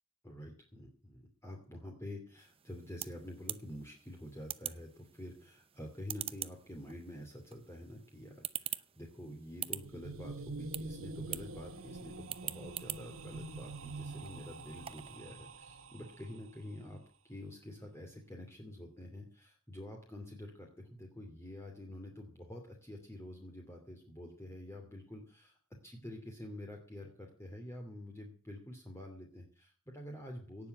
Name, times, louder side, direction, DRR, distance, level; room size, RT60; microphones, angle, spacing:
voice 1, 0.2-17.0 17.2-25.6 25.8-30.7, left 1 dB, 15° left, 1 dB, 2.6 m, -48 dB
sound 1, 2.4-15.2, right 10 dB, 30° right, 0.7 m, -46 dB
sound 2, 9.7-16.5, right 3 dB, 85° right, 1.5 m, -46 dB
18.0 x 7.1 x 7.9 m, 0.43 s
head